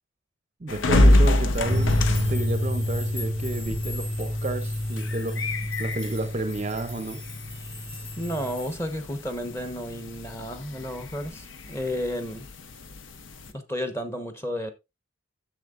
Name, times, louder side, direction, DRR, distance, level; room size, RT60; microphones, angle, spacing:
voice 1, 0.6-2.0 2.3-5.4 5.8-7.2, right 2 dB, 35° right, 0.6 m, -31 dB
sound 1, 0.7-13.5, left 1 dB, 85° left, 0.8 m, -27 dB
sound 2, 1.1-8.8, left 2 dB, 30° left, 2.1 m, -44 dB
sound 3, 1.6-8.5, left 1 dB, 50° left, 4.1 m, -29 dB
voice 2, 8.2-12.5 13.5-14.7, equal, 15° left, 1.0 m, -32 dB
10.5 x 6.9 x 2.5 m
head